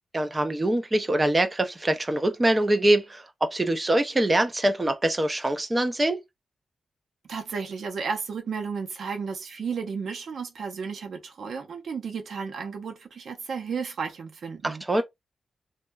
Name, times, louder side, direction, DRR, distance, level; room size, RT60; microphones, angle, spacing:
voice 1, 0.1-6.2 14.6-15.0, right 1 dB, 20° right, 0.5 m, -24 dB
voice 2, 7.3-15.0, right 5 dB, 70° right, 0.7 m, -33 dB
2.8 x 2.2 x 2.2 m
wide cardioid pair, 120°, 0 cm